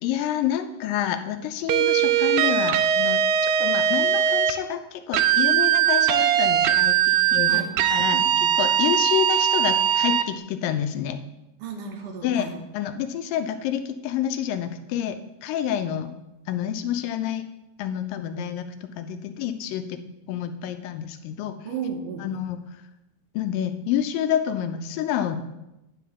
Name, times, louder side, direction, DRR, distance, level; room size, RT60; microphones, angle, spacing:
voice 1, 0.0-7.6 7.9-8.2 8.6-11.2 12.2-12.5 12.7-16.1 16.5-17.5 17.8-20.0 20.3-21.5 22.2-22.6 23.4-25.4, left 10 dB, 80° left, 9 dB, 2.3 m, -28 dB
sound 1, 1.7-4.6 5.1-10.3, right 10 dB, 90° right, 2.4 m, -20 dB
voice 2, 8.1-8.5 11.6-12.6 21.7-22.4, right 6 dB, 70° right, 3 dB, 2.4 m, -34 dB
10.0 x 3.8 x 7.1 m, 0.92 s
omnidirectional pair, 4.0 m